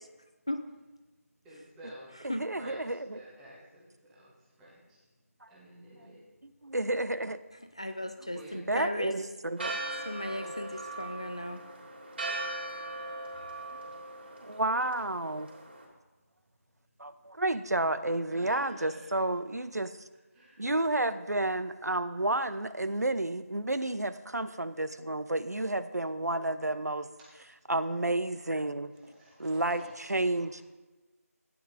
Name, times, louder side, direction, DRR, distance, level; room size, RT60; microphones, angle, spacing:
voice 1, 1.4-2.1 2.6-5.1 5.5-6.2 8.2-8.8 13.3-14.3 18.3-19.1 20.3-20.6 29.0-30.4, equal, 5° right, -6 dB, 1.0 m, -52 dB
voice 2, 2.2-3.2 5.4-5.5 6.4-7.4 8.2-10.0 10.4-10.5 14.4-15.5 17.0-19.9 20.6-27.1 27.7-28.9 29.4-30.6, right 2 dB, 90° right, 12 dB, 0.8 m, -31 dB
voice 3, 7.8-9.1 10.1-11.6, left 1 dB, 20° left, 7 dB, 0.3 m, -36 dB
Church bell, 9.6-15.8, right 2 dB, 40° right, 3.2 m, -39 dB
15.0 x 9.6 x 2.7 m, 1.1 s
figure-of-eight pair, 170°, 9 cm